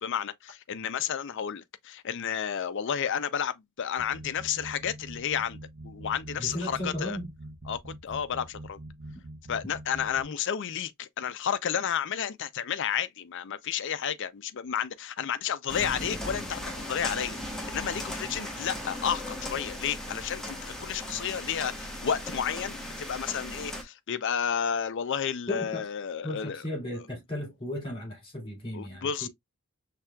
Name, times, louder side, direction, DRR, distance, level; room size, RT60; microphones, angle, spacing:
voice 1, 0.0-5.6 5.8-7.2 7.7-8.8 9.5-26.6 28.7-29.3, left 8 dB, 55° left, 0.5 m, -31 dB
sound 1, 4.0-10.2, right 1 dB, 55° right, 0.9 m, -44 dB
voice 2, 6.4-7.3 25.5-25.8 26.2-29.3, left 1 dB, 25° left, 2.7 m, -35 dB
sound 2, 15.7-23.8, left 1 dB, ahead, 1.0 m, -37 dB
5.9 x 3.3 x 2.3 m
head